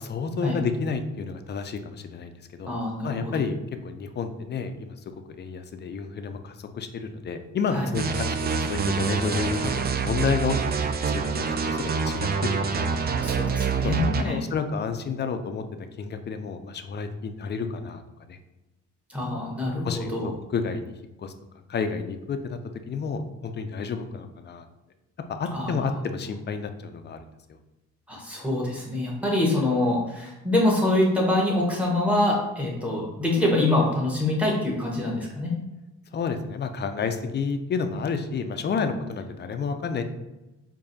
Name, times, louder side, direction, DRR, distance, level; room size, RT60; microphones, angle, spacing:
voice 1, 0.0-2.7 3.0-4.9 5.4-10.6 11.1-11.3 11.6-12.9 13.8-15.6 16.0-18.0 18.3-18.4 19.6-20.9 21.2-21.3 21.7-22.6 22.9-24.7 25.4-27.3 36.1-40.0, left 5 dB, 35° left, 8 dB, 0.4 m, -30 dB
voice 2, 2.7-3.4 7.7-7.9 13.2-14.4 19.1-20.3 25.5-26.0 28.1-35.5, left 1 dB, 5° right, -3 dB, 1.3 m, -25 dB
sound 1, 7.9-14.2, right 5 dB, 35° right, 0.4 m, -26 dB
4.7 x 2.6 x 2.7 m, 1.0 s
cardioid pair, 90°, 30 cm